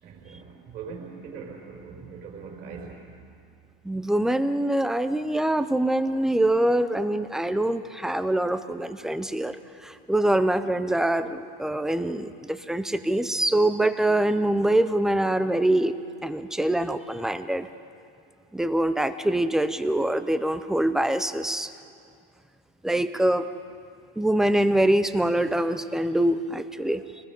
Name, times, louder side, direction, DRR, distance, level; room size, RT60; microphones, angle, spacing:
voice 1, 0.0-3.2, right 5 dB, 35° right, -1 dB, 5.0 m, -41 dB
voice 2, 3.8-9.6 9.8-15.9 16.2-17.7 18.5-21.7 22.8-23.5 24.2-27.0, right 1 dB, ahead, 11 dB, 0.4 m, -24 dB
26.0 x 20.5 x 5.3 m, 2.4 s
supercardioid pair, 150°, 29 cm